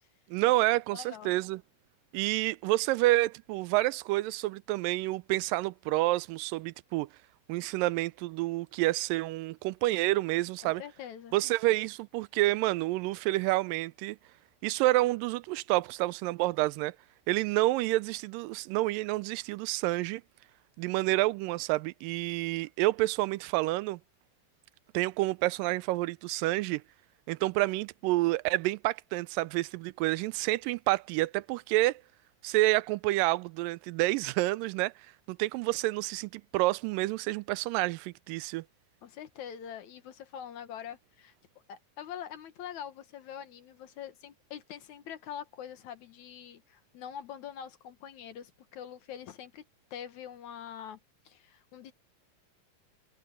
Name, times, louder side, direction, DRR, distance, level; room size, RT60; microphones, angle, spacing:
voice 1, 0.3-1.6 2.1-7.1 7.5-10.8 11.3-14.2 14.6-17.0 17.3-20.2 20.8-24.0 24.9-26.8 27.3-32.0 32.4-34.9 35.3-38.6, right 19 dB, 90° right, 2.2 m, -28 dB
voice 2, 0.9-1.3 10.6-11.4 39.0-41.3 41.7-51.0 51.3-51.9, left 9 dB, 65° left, 2.4 m, -44 dB
omnidirectional pair, 3.9 m